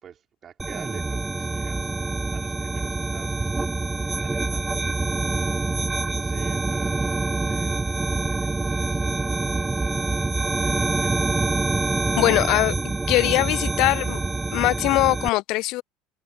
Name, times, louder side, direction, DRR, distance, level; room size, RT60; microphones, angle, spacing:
voice 1, 0.0-10.1 10.6-11.3, right 8 dB, 35° right, 3.2 m, -47 dB
sound 1, 0.6-15.3, right 3 dB, 15° right, 1.0 m, -26 dB
voice 2, 12.2-12.7 13.1-14.2 14.5-15.8, left 19 dB, 55° left, 0.6 m, -21 dB
hypercardioid pair, 75°, 0 cm